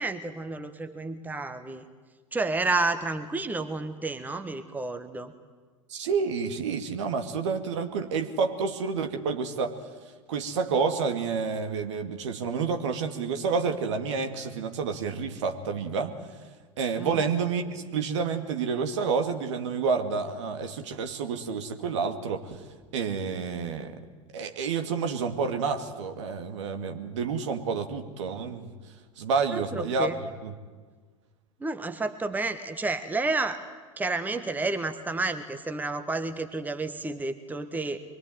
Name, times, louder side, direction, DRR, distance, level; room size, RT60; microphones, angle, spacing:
voice 1, 0.0-1.8 2.3-5.3 17.0-17.2 29.5-30.2 31.6-33.6 34.0-38.0, right 3 dB, 10° right, 9 dB, 1.4 m, -30 dB
voice 2, 5.9-9.8 10.3-16.1 16.8-22.6 22.9-24.0 24.3-28.7 29.2-30.1 30.4-30.5, right 5 dB, 60° right, 5 dB, 2.4 m, -29 dB
24.5 x 22.5 x 9.4 m, 1.5 s
figure-of-eight pair, 80°, 17 cm